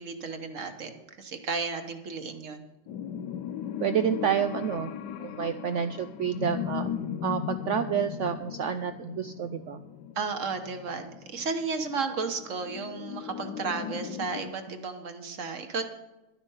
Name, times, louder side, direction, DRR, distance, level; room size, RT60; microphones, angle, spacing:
voice 1, 0.0-2.6 10.2-15.8, right 4 dB, 50° right, 7 dB, 1.3 m, -33 dB
sound 1, 2.9-14.5, left 8 dB, 85° left, 1.3 m, -37 dB
voice 2, 3.8-4.9 5.2-6.9 7.2-9.8, right 8 dB, 80° right, 11 dB, 0.6 m, -29 dB
11.5 x 9.9 x 5.6 m, 1.0 s
omnidirectional pair, 1.8 m